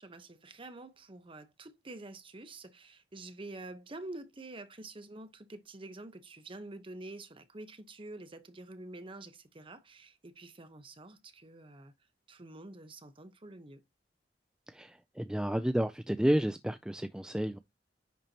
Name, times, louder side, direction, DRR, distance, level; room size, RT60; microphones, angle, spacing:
voice 1, 0.0-11.9 12.3-13.8, right 2 dB, 30° right, 0.9 m, -47 dB
voice 2, 14.7-17.6, right 1 dB, 5° right, 0.3 m, -31 dB
10.0 x 4.4 x 2.8 m
head